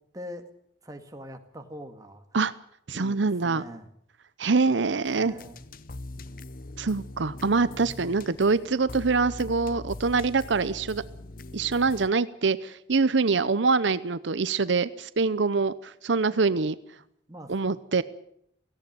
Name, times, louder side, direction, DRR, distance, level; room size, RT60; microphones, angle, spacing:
voice 1, 0.1-0.5 0.8-2.2 2.9-3.9 5.1-5.7 7.5-7.9 17.3-17.8, equal, 20° right, 5 dB, 2.0 m, -43 dB
voice 2, 2.9-3.6 4.4-5.3 6.8-11.0 11.5-16.8 17.5-18.0, right 4 dB, 80° right, 15 dB, 0.8 m, -24 dB
sound 1, 5.0-12.1, left 2 dB, 50° left, 0.8 m, -42 dB
17.5 x 17.0 x 9.2 m, 0.70 s
head